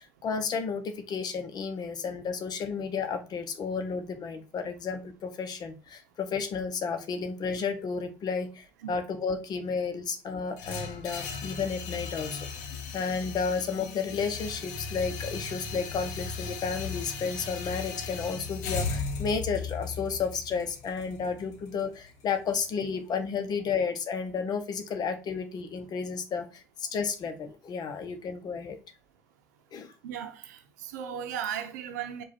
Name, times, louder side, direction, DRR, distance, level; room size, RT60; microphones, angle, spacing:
voice 1, 0.0-28.8 29.7-29.9, left 5 dB, 50° left, 0.8 m, -32 dB
sound 1, 10.6-22.6, left 4 dB, 85° left, 0.7 m, -37 dB
voice 2, 30.0-32.2, right 9 dB, 90° right, 0.6 m, -36 dB
4.8 x 2.4 x 4.2 m
hypercardioid pair, 70°, 9 cm